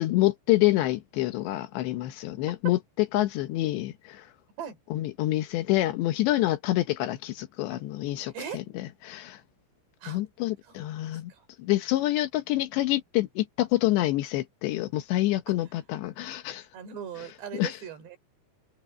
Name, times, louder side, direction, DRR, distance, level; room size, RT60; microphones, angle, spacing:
voice 1, 0.0-4.3 4.9-9.4 10.1-11.3 11.6-16.7 17.2-17.3 17.5-17.8, left 16 dB, 80° left, 3.3 m, -27 dB
voice 2, 10.6-11.5 15.5-15.6 16.7-18.2, right 8 dB, 75° right, 5.7 m, -40 dB
omnidirectional pair, 5.0 m